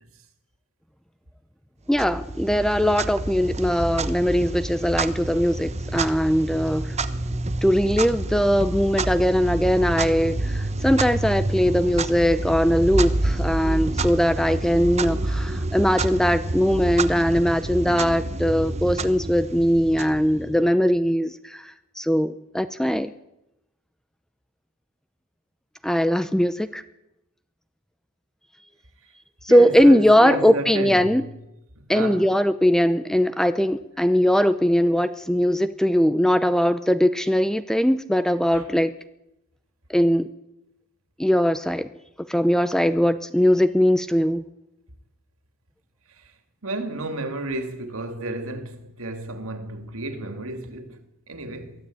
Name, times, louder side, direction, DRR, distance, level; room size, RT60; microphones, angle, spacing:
voice 1, 1.9-6.9 7.6-23.1 25.8-26.8 29.4-31.2 31.9-38.9 39.9-40.3 41.2-41.9 42.2-44.4, equal, ahead, 0.6 m, -20 dB
Clock, 1.9-20.7, right 2 dB, 30° right, 1.0 m, -28 dB
voice 2, 29.5-31.2 31.8-32.3 38.5-38.6 46.6-51.0 51.3-51.8, right 2 dB, 65° right, 2.7 m, -32 dB
23.0 x 14.5 x 8.7 m
head